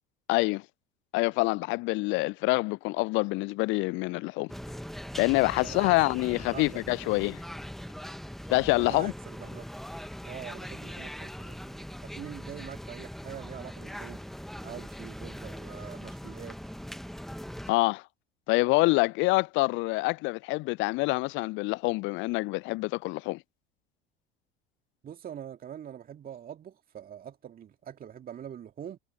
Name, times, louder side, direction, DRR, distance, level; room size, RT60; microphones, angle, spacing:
voice 1, 0.3-0.6 1.1-4.5 5.2-7.4 8.5-9.1 17.7-18.0 18.5-23.4, left 24 dB, 40° left, 0.6 m, -26 dB
sound 1, 4.5-17.7, equal, ahead, 1.7 m, -41 dB
voice 2, 5.6-7.1 8.7-9.7 10.2-14.2 14.6-16.6 25.0-29.0, right 9 dB, 30° right, 2.2 m, -44 dB
figure-of-eight pair, 70°, 30 cm